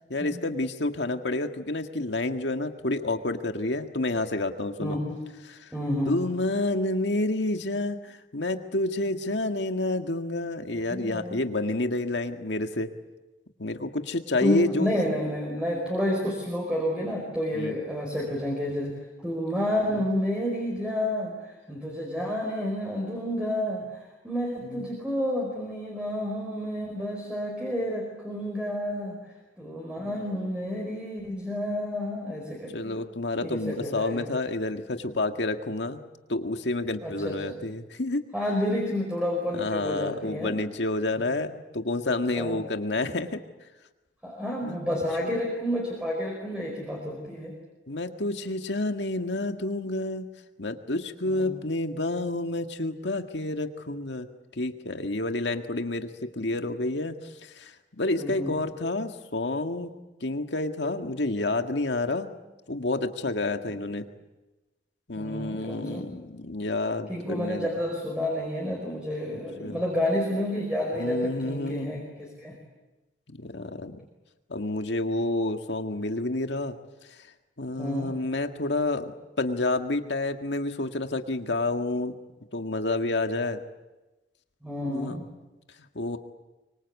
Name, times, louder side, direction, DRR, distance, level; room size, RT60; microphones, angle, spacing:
voice 1, 0.1-5.0 5.4-5.7 6.0-12.9 13.6-14.9 17.5-17.7 19.9-20.1 24.7-24.9 30.0-30.2 32.7-36.0 36.3-38.3 39.5-43.4 44.6-45.4 47.9-50.3 50.6-54.3 54.5-59.9 60.2-62.3 62.7-64.1 65.1-67.7 69.6-69.8 70.9-71.9 73.3-74.0 74.5-76.8 77.6-79.1 79.4-82.1 82.5-83.6 84.8-85.3 86.0-86.2, left 2 dB, 80° left, 6 dB, 1.9 m, -29 dB
voice 2, 4.8-5.1 5.7-6.1 10.9-11.4 14.4-18.9 19.2-29.2 29.6-33.0 33.4-34.3 37.0-37.6 38.3-40.5 42.3-42.6 44.2-47.5 51.2-51.6 58.2-58.5 65.1-66.1 67.1-72.6 77.8-78.1 84.6-85.3, left 1 dB, 5° right, -1 dB, 4.9 m, -30 dB
24.5 x 24.5 x 8.3 m, 1.1 s
head